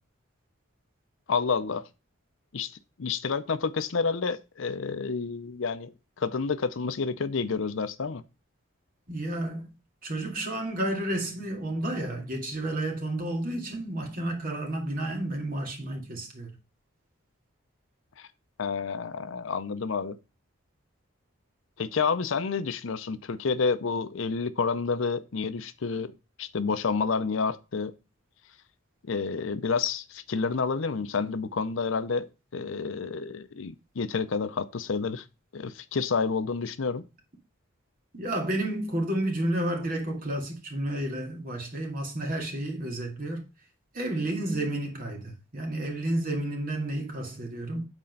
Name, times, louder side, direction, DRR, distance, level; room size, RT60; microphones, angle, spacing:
voice 1, 1.3-1.8 2.5-2.7 3.0-5.9 6.2-8.2 18.2-18.3 18.6-20.2 21.8-26.1 26.4-27.9 29.1-32.3 32.5-35.2 35.5-37.0, left 5 dB, 65° left, 0.5 m, -29 dB
voice 2, 9.1-9.7 10.0-16.5 38.1-43.4 43.9-47.8, right 1 dB, 40° right, 2.2 m, -31 dB
8.1 x 4.3 x 5.3 m
head